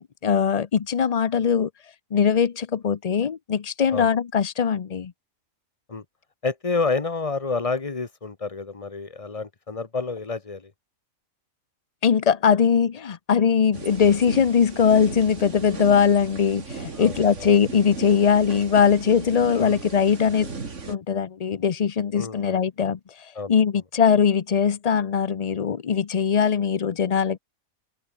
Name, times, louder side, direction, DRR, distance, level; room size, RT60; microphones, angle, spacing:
voice 1, 0.0-1.7 2.1-5.1 12.0-20.6 20.9-27.4, left 7 dB, 45° left, 0.5 m, -21 dB
voice 2, 6.4-10.7 16.9-17.5 19.6-19.8 22.1-22.6 23.3-23.5, left 4 dB, 25° left, 1.3 m, -29 dB
sound 1, 13.7-20.9, right 4 dB, 55° right, 2.6 m, -37 dB
open air
omnidirectional pair, 1.5 m